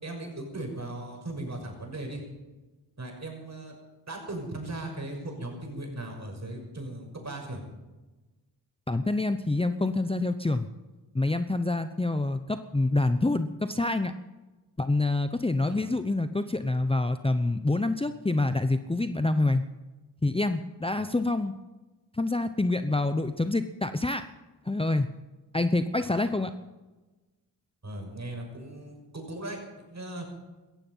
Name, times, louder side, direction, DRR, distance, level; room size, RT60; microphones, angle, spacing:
voice 1, 0.0-2.2 3.0-3.8 4.1-7.6 15.6-15.9 21.0-21.1 26.1-26.2 27.8-30.3, right 2 dB, 40° right, 2 dB, 6.2 m, -38 dB
voice 2, 8.9-10.7 11.1-14.1 14.8-19.6 20.2-21.5 22.1-24.2 24.6-25.1 25.5-26.5, left 2 dB, 15° left, 10 dB, 0.8 m, -26 dB
17.0 x 14.5 x 5.6 m, 1.2 s
cardioid pair, 55°, 41 cm